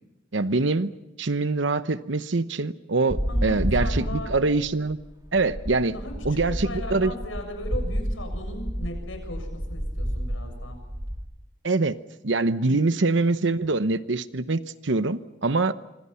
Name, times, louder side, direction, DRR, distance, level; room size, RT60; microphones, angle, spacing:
voice 1, 0.3-0.9 1.2-5.0 5.3-5.9 6.2-7.1 11.6-12.0 12.2-15.7, right 3 dB, 65° right, 13 dB, 0.9 m, -24 dB
sound 1, 3.1-11.2, equal, 20° right, 2.2 m, -30 dB
voice 2, 3.3-4.3 5.9-10.8 12.6-12.9, left 1 dB, 80° left, 5 dB, 7.3 m, -37 dB
26.5 x 25.5 x 5.8 m, 0.96 s
head